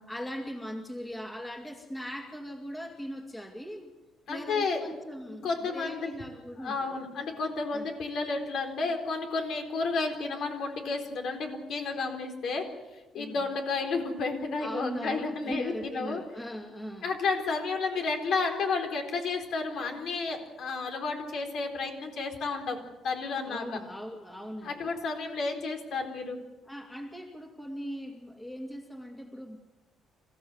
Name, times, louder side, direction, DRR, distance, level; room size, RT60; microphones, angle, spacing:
voice 1, 0.1-3.9 4.3-7.0 7.7-7.9 13.1-13.5 14.6-17.1 23.4-24.9 26.7-29.6, equal, 5° left, 3 dB, 2.4 m, -40 dB
voice 2, 4.3-4.8 5.3-6.1 6.6-12.6 13.1-16.2 17.0-22.8 23.0-23.8 24.6-26.4, left 4 dB, 60° left, 4 dB, 4.1 m, -31 dB
27.5 x 15.5 x 8.0 m, 1.1 s
cardioid pair, 145°, 0 cm